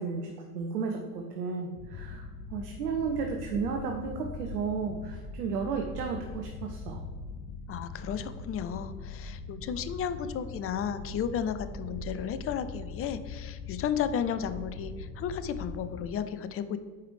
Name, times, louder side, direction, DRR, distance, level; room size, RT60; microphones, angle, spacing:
voice 1, 0.0-2.2 2.5-7.0, right 5 dB, 75° right, 3 dB, 0.9 m, -33 dB
sound 1, 1.7-16.1, left 4 dB, 55° left, 0.8 m, -41 dB
voice 2, 7.7-16.8, left 8 dB, 30° left, 12 dB, 0.5 m, -33 dB
9.1 x 4.8 x 3.3 m, 1.5 s
figure-of-eight pair, 65°, 48 cm